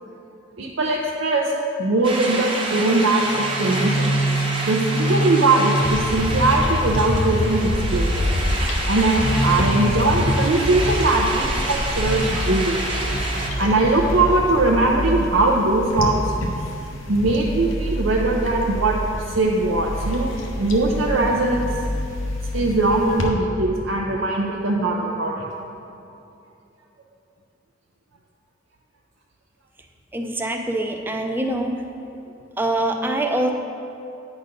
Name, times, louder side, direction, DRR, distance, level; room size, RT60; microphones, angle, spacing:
voice 1, 0.6-1.5 1.8-4.1 4.6-8.3 8.9-12.8 13.6-16.2 17.1-18.9 19.3-21.7 22.5-25.5, right 2 dB, 75° right, -2 dB, 0.6 m, -20 dB
sound 1, 2.0-13.5, right 2 dB, 25° right, 0.8 m, -29 dB
sound 2, 3.3-15.1, equal, 45° left, 0.5 m, -25 dB
sound 3, 5.9-23.3, equal, 85° left, 0.9 m, -29 dB
voice 2, 30.1-31.8 32.6-33.5, right 1 dB, 10° right, 3 dB, 0.5 m, -24 dB
9.0 x 4.0 x 5.2 m, 2.8 s
head